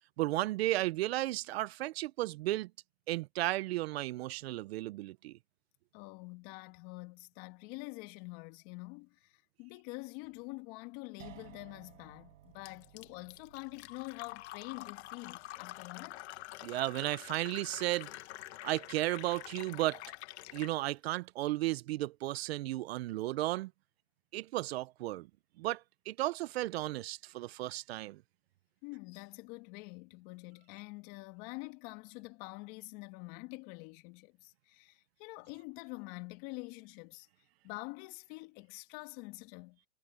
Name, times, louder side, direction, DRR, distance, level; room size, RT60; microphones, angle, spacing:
voice 1, 0.2-2.7 3.1-5.3 16.6-18.1 18.6-20.0 20.5-23.7 24.3-25.3 25.6-25.8 26.1-28.2, right 17 dB, 45° right, 0.9 m, -34 dB
voice 2, 5.9-16.2 28.8-37.3 37.6-39.8, left 26 dB, 35° left, 2.0 m, -46 dB
sound 1, 11.2-18.1, right 12 dB, 65° right, 5.7 m, -59 dB
Fill (with liquid), 12.7-20.8, left 17 dB, 50° left, 1.6 m, -47 dB
hypercardioid pair, 140°, 42 cm